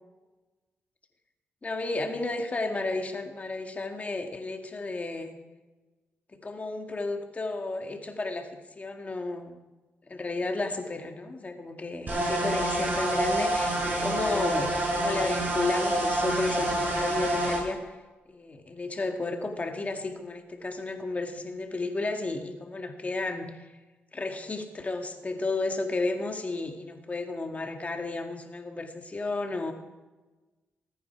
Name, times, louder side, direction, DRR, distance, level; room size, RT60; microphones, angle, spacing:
voice 1, 1.6-5.4 6.3-8.5 8.8-9.6 10.1-17.9 18.3-23.7 24.1-29.7, left 2 dB, 30° left, 4 dB, 2.0 m, -32 dB
sound 1, 12.1-17.6, right 1 dB, 40° right, 6.1 m, -27 dB
20.0 x 9.4 x 4.7 m, 1.2 s
cardioid pair, 75°, 4 cm